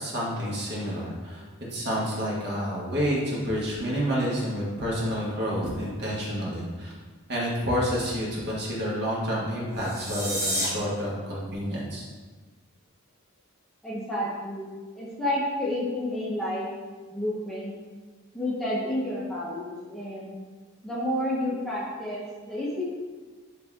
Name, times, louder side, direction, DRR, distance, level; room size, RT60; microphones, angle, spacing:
voice 1, 0.0-1.4 1.7-6.9 7.3-12.0, equal, 50° right, -5 dB, 1.6 m, -29 dB
sound 1, 9.7-10.7, equal, 15° right, 1.3 m, -29 dB
voice 2, 13.8-16.8 17.1-17.7 18.3-20.4 20.8-22.8, left 1 dB, ahead, -7 dB, 0.9 m, -30 dB
8.0 x 3.3 x 3.6 m, 1.4 s
head